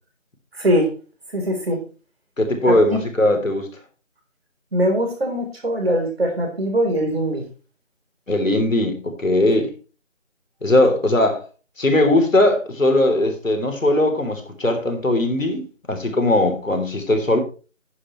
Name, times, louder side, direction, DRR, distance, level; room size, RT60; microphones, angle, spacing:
voice 1, 0.6-0.9 1.3-1.8 2.7-3.0 4.7-7.4, equal, 50° right, 4.0 m, -21 dB
voice 2, 2.4-3.7 8.3-9.7 10.6-11.4 11.8-17.4, left 1 dB, 85° left, 3.4 m, -19 dB
10.5 x 9.9 x 3.2 m
figure-of-eight pair, 170°, 38 cm